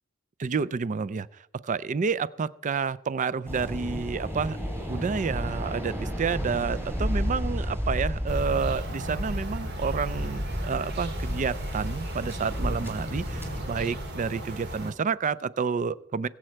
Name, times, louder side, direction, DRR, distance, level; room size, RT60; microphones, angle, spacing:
voice 1, 0.4-4.6 4.9-16.3, right 5 dB, 40° right, 18 dB, 0.4 m, -29 dB
Waves surf, 3.5-13.7, equal, 10° right, 3.2 m, -32 dB
sound 1, 8.3-14.9, right 1 dB, 55° right, 2.1 m, -37 dB
22.5 x 7.6 x 4.5 m, 0.77 s
head